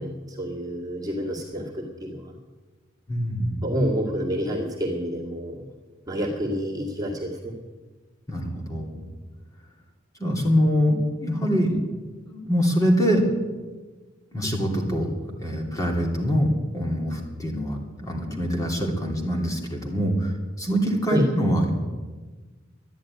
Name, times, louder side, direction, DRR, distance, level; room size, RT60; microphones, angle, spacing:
voice 1, 0.0-2.3 3.6-5.6 6.1-7.5 21.1-21.3, equal, 20° right, -3 dB, 2.1 m, -28 dB
voice 2, 3.1-3.7 8.3-9.0 10.2-11.8 12.3-13.2 14.3-15.1 15.4-21.8, equal, 20° left, 0 dB, 2.9 m, -24 dB
12.5 x 10.5 x 9.7 m, 1.3 s
head